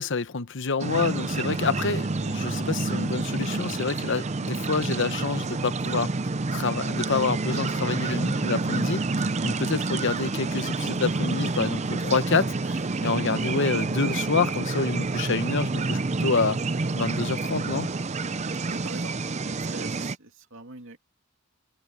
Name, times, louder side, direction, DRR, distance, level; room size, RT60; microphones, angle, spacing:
voice 1, 0.0-6.1 6.5-16.6 16.9-17.9, left 4 dB, 60° left, 0.9 m, -28 dB
sound 1, 0.8-20.2, right 3 dB, 35° right, 0.6 m, -28 dB
voice 2, 18.7-19.1 19.6-21.0, right 3 dB, 65° right, 2.8 m, -42 dB
head